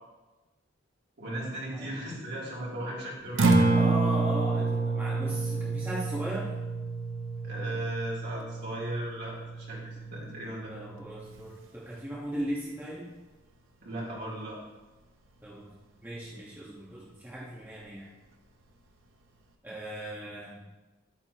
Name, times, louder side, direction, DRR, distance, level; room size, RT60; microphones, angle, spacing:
voice 1, 1.2-3.7 7.4-10.7 13.8-14.6, right 1 dB, 55° right, -6 dB, 3.4 m, -37 dB
Acoustic guitar, 3.2-11.4, right 3 dB, 85° right, 0.9 m, -29 dB
voice 2, 3.7-6.5 10.7-13.1 15.4-15.7 16.0-18.1 19.6-20.6, right 1 dB, 10° right, -6 dB, 1.3 m, -38 dB
11.0 x 8.9 x 3.0 m, 1.1 s
head